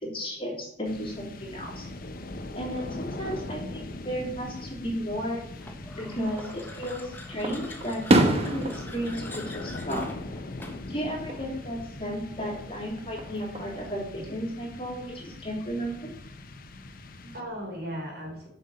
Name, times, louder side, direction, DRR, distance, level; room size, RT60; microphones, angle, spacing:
voice 1, 0.0-1.9 2.5-5.4 6.0-10.0 10.9-16.1, equal, 30° left, -3 dB, 3.1 m, -34 dB
sound 1, 0.8-17.8, left 2 dB, 50° left, 0.8 m, -41 dB
sound 2, 5.6-11.0, left 1 dB, 10° left, 1.2 m, -44 dB
Fireworks, 6.3-7.0 7.4-10.6 10.9-11.4 13.0-13.8, right 1 dB, 35° right, 1.1 m, -27 dB
voice 2, 16.5-18.5, equal, 60° right, 0 dB, 3.4 m, -40 dB
7.9 x 5.5 x 7.6 m, 0.75 s
head